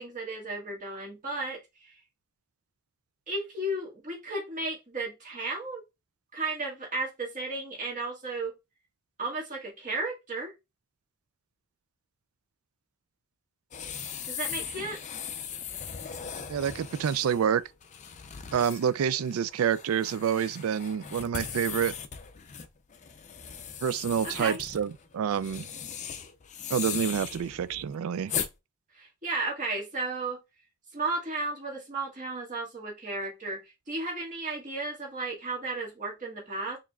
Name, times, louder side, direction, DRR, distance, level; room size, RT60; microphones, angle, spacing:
voice 1, 0.0-1.6 3.3-5.8 6.3-8.5 9.2-10.5 14.3-15.0 24.2-24.6 29.0-30.4 30.9-33.6 33.9-36.8, right 2 dB, 35° right, 1.6 m, -34 dB
sound 1, 13.7-28.5, left 8 dB, 35° left, 0.4 m, -39 dB
voice 2, 16.5-17.6 18.5-21.9 23.8-25.7 26.7-28.3, right 8 dB, 70° right, 0.3 m, -28 dB
4.7 x 3.0 x 2.3 m
head